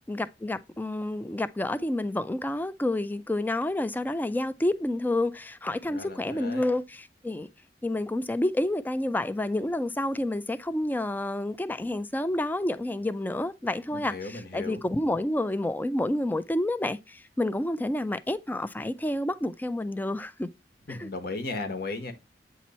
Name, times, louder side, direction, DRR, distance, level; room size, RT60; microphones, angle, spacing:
voice 1, 0.0-7.5 7.8-20.5 20.9-21.1, left 1 dB, 10° left, 0.3 m, -29 dB
voice 2, 5.9-6.7 13.9-14.8 20.9-22.1, left 3 dB, 60° left, 1.2 m, -36 dB
8.2 x 2.9 x 4.2 m
head